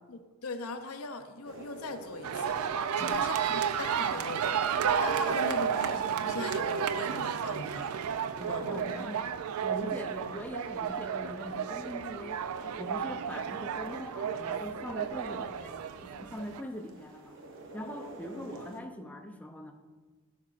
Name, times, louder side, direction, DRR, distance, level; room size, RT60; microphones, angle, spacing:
voice 1, 0.1-7.9 8.4-8.9, left 3 dB, 85° left, 7 dB, 0.6 m, -40 dB
sound 1, 1.4-18.8, right 1 dB, 60° right, 0.8 m, -51 dB
sound 2, 2.2-16.6, right 7 dB, 90° right, 0.4 m, -32 dB
voice 2, 3.0-3.3 5.0-5.3 8.4-9.2 9.6-12.4 12.8-17.4 17.7-19.7, left 1 dB, 5° left, 4 dB, 0.5 m, -42 dB
12.0 x 6.0 x 2.5 m, 1.4 s
head